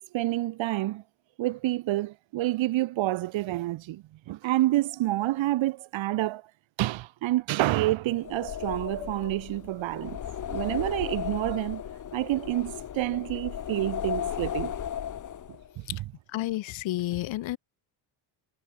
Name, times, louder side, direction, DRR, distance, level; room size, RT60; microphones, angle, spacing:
voice 1, 0.1-1.0 1.4-6.4 6.8-10.2 10.5-11.8 12.1-14.7, right 16 dB, 70° right, 2.1 m, -28 dB
sound 1, 8.1-15.7, left 9 dB, 40° left, 3.1 m, -35 dB
voice 2, 16.3-17.6, left 16 dB, 70° left, 2.4 m, -31 dB
cardioid pair, 170°, 48 cm